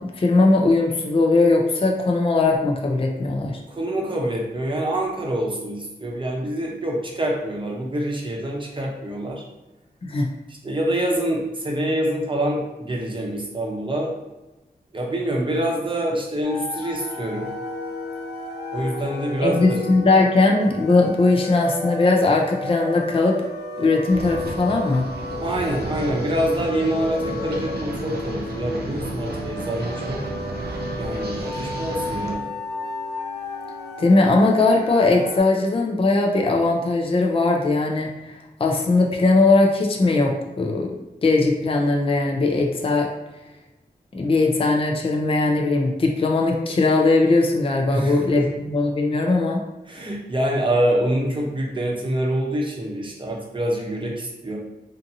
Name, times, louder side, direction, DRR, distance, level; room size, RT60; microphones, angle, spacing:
voice 1, 0.2-3.6 10.0-10.3 19.4-23.4 23.8-25.1 34.0-40.9 41.2-43.1 44.1-49.6, left 3 dB, 35° left, 1 dB, 0.4 m, -19 dB
voice 2, 3.7-9.4 10.5-14.1 14.9-17.5 18.7-19.8 25.4-30.2 31.0-32.4 47.9-48.5 49.9-54.6, right 1 dB, 30° right, -1 dB, 0.7 m, -26 dB
sound 1, 16.4-35.4, left 2 dB, 85° left, 0.5 m, -33 dB
sound 2, 24.1-32.4, right 2 dB, 75° right, 0.5 m, -33 dB
2.6 x 2.5 x 2.6 m, 1.0 s
wide cardioid pair, 65°, 17 cm